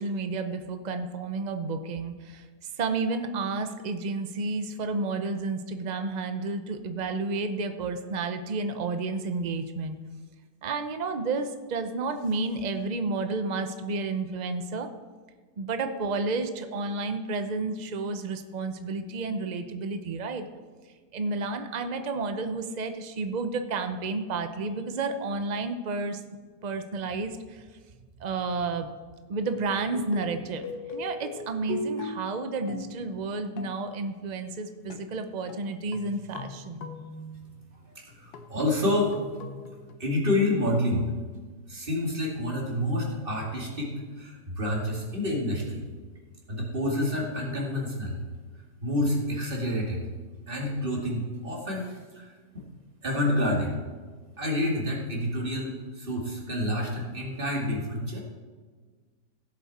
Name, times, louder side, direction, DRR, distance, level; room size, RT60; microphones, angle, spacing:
voice 1, 0.0-2.4 2.8-10.0 10.6-14.9 15.6-20.4 21.1-26.2 26.6-27.6 28.2-28.9 29.3-30.6 30.9-36.9, right 3 dB, 90° right, 7 dB, 0.3 m, -31 dB
sound 1, 29.5-34.0 34.9-35.2 35.5-37.6 38.1-40.0, left 3 dB, 65° left, 1.4 m, -40 dB
voice 2, 38.2-39.1 40.0-41.1 41.7-45.9 46.5-48.2 48.8-50.1 50.5-52.6 53.0-53.7 54.4-58.2, left 1 dB, 30° right, -2 dB, 2.5 m, -28 dB
16.5 x 7.6 x 4.2 m, 1.4 s
omnidirectional pair, 1.8 m